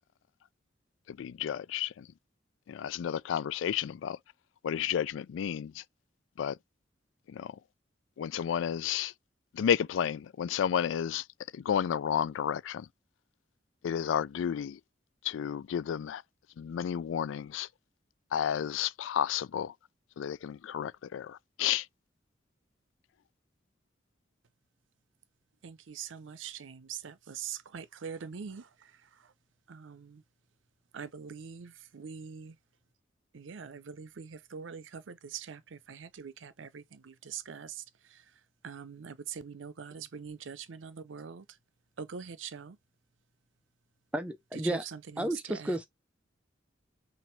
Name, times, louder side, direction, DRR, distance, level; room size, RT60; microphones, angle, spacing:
voice 1, 1.1-2.1 2.7-4.2 4.6-5.8 6.4-6.6 7.3-7.6 8.2-9.1 9.5-11.3 11.5-12.9 13.8-14.8 15.2-16.2 16.6-17.7 18.3-19.7 20.2-21.9, left 9 dB, 80° left, 0.3 m, -31 dB
voice 2, 25.6-29.3 29.7-30.2 30.9-32.6 33.3-41.6 42.0-42.8 44.5-45.8, right 7 dB, 85° right, 0.6 m, -43 dB
voice 3, 44.1-44.8 45.2-45.9, right 1 dB, 5° right, 0.4 m, -32 dB
5.9 x 2.6 x 3.1 m
head